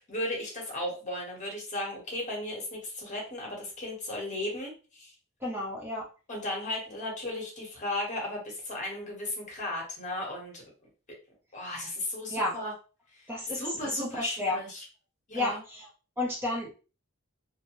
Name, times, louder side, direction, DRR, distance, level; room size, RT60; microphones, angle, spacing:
voice 1, 0.0-5.1 6.3-10.7 11.5-12.7 13.1-14.8 15.3-15.6, left 1 dB, 35° left, -1 dB, 1.0 m, -35 dB
voice 2, 5.4-6.1 12.3-12.5 13.3-13.6 13.9-14.6 15.3-15.5 16.2-16.7, left 2 dB, 10° right, -3 dB, 0.6 m, -31 dB
2.6 x 2.1 x 2.9 m, 0.34 s
head